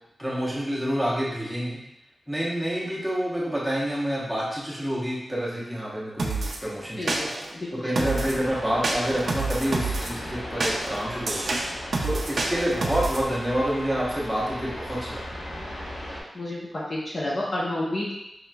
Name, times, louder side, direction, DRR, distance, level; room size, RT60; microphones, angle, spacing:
voice 1, 0.2-1.8 2.3-7.3 7.8-15.2, equal, ahead, -6 dB, 0.8 m, -28 dB
sound 1, 6.2-6.6 7.1-7.5 8.0-8.4 8.8-10.1 10.6-13.2, right 3 dB, 55° right, 0.4 m, -28 dB
voice 2, 7.0-8.0 16.3-18.1, left 1 dB, 35° left, -5 dB, 0.6 m, -30 dB
sound 2, 7.9-16.2, left 1 dB, 65° left, 0.9 m, -37 dB
4.9 x 3.0 x 2.2 m, 0.87 s
wide cardioid pair, 170°, 0 cm